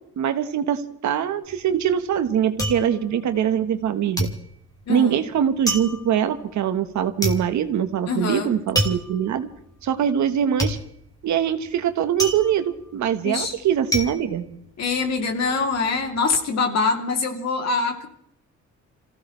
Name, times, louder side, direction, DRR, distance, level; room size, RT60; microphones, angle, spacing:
voice 1, 0.2-4.3 4.9-9.5 9.8-10.8 11.2-14.5, right 9 dB, 70° right, 9 dB, 1.3 m, -23 dB
sound 1, 1.5-3.9 4.2-15.3 15.6-16.2, right 1 dB, 10° left, 2.9 m, -29 dB
voice 2, 4.9-5.3 8.1-8.5 13.2-13.6 14.8-18.1, left 4 dB, 60° left, 3 dB, 2.9 m, -24 dB
27.0 x 16.0 x 3.3 m, 0.69 s
cardioid pair, 90°, 30 cm